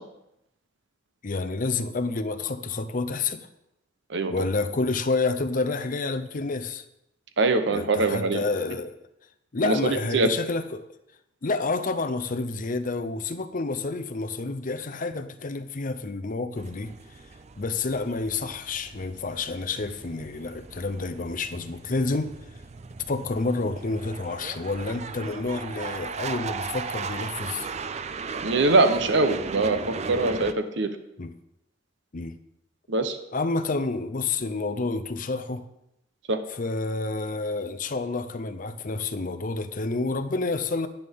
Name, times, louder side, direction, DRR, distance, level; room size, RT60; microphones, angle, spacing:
voice 1, 1.2-3.5 4.3-6.8 7.7-8.9 9.5-10.9 11.4-16.9 17.6-22.3 23.1-27.7 31.2-31.3 32.1-32.4 33.3-35.7 36.5-40.9, left 3 dB, 45° left, 10 dB, 0.6 m, -29 dB
voice 2, 7.4-8.4 9.6-10.3 28.4-30.9 32.9-33.2 36.3-36.4, right 3 dB, 65° right, 9 dB, 0.8 m, -23 dB
sound 1, 16.6-30.5, right 5 dB, 35° right, 0.4 m, -37 dB
10.5 x 9.3 x 3.6 m, 0.85 s
head